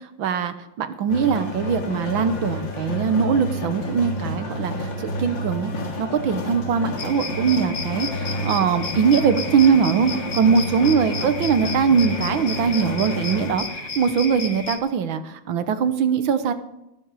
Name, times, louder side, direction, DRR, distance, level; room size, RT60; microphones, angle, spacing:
voice 1, 0.2-5.7 6.0-16.5, right 6 dB, 80° right, 10 dB, 1.8 m, -21 dB
sound 1, 1.1-13.6, left 1 dB, 65° left, 2.5 m, -30 dB
sound 2, 7.0-14.8, left 4 dB, 35° left, 1.6 m, -33 dB
19.5 x 7.7 x 4.8 m, 0.91 s
omnidirectional pair, 2.2 m